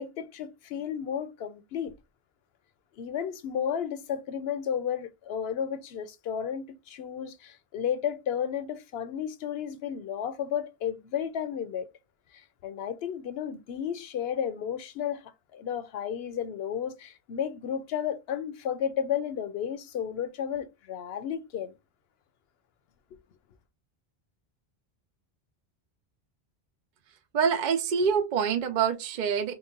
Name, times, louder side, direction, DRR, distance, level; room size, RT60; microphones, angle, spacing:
voice 1, 0.0-1.9 3.0-11.9 12.3-21.7 23.1-23.2, left 8 dB, 75° left, 0.8 m, -33 dB
voice 2, 27.3-29.5, right 6 dB, 55° right, 0.6 m, -26 dB
4.0 x 2.1 x 3.8 m
omnidirectional pair, 1.0 m